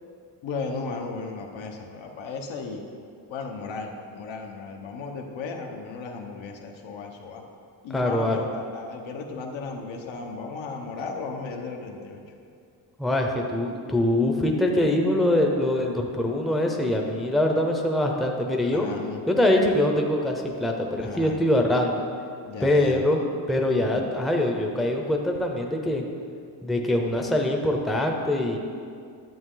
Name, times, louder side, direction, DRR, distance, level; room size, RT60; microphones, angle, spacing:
voice 1, 0.4-2.8 3.3-7.4 7.8-12.2 18.7-19.2 21.0-21.4 22.4-23.0 23.7-24.1, left 4 dB, 80° left, 2 dB, 1.2 m, -35 dB
voice 2, 7.9-8.4 13.0-18.9 19.3-22.0 22.6-23.2 23.5-26.0 26.6-28.6, left 1 dB, ahead, 1 dB, 0.6 m, -23 dB
11.0 x 8.1 x 3.9 m, 2.3 s
cardioid pair, 150°, 45 cm